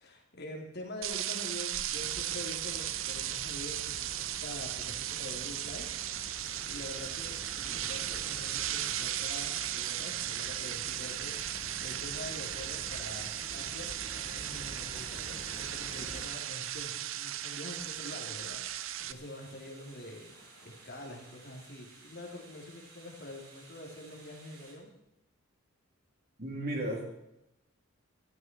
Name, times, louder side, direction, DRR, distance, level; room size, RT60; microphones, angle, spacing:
voice 1, 0.0-5.9 6.3-11.3 11.8-24.9, left 1 dB, 50° left, 0 dB, 3.3 m, -45 dB
sound 1, 1.0-19.1, right 12 dB, 65° right, 0.6 m, -36 dB
sound 2, 1.9-16.3, left 1 dB, 30° left, 2.7 m, -48 dB
sound 3, 6.4-24.7, right 3 dB, 80° right, 4.7 m, -56 dB
voice 2, 26.4-27.1, right 1 dB, 45° right, 0 dB, 3.6 m, -34 dB
17.0 x 14.0 x 4.6 m, 0.85 s
head